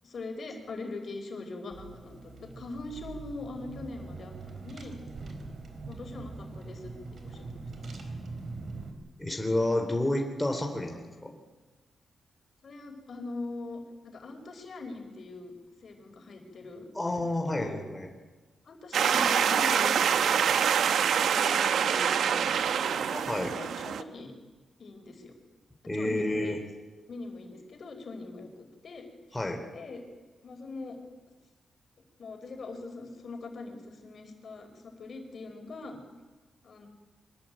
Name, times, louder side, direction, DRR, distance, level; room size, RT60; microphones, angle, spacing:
voice 1, 0.0-5.4 5.9-7.9 12.6-15.5 15.8-16.9 17.5-17.8 18.6-20.5 20.9-23.1 23.4-24.3 24.8-25.3 25.9-26.5 27.1-29.4 29.7-30.0 30.4-31.0 32.2-36.0 36.6-36.9, left 3 dB, 55° left, 4 dB, 5.0 m, -42 dB
Car / Engine, 1.7-8.9, right 3 dB, 55° right, 4.4 m, -42 dB
voice 2, 9.2-11.4 16.9-18.1 23.1-23.5 25.9-26.6 29.3-29.6, left 1 dB, 10° left, 2 dB, 3.7 m, -30 dB
sound 1, 18.9-24.0, right 8 dB, 85° right, 1.1 m, -25 dB
24.5 x 20.0 x 9.2 m, 1.2 s
wide cardioid pair, 125°, 0 cm